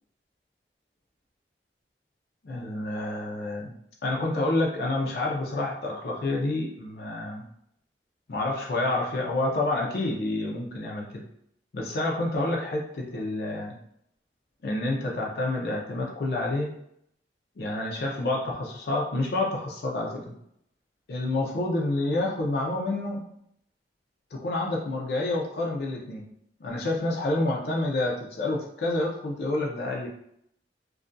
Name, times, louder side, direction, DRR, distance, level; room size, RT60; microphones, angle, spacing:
voice 1, 2.4-3.7 4.0-7.4 8.3-11.2 11.7-13.8 14.6-16.7 17.6-20.3 21.1-23.2 24.3-26.3 26.6-30.1, left 2 dB, 60° left, -2 dB, 0.4 m, -28 dB
2.3 x 2.2 x 2.5 m, 0.73 s
head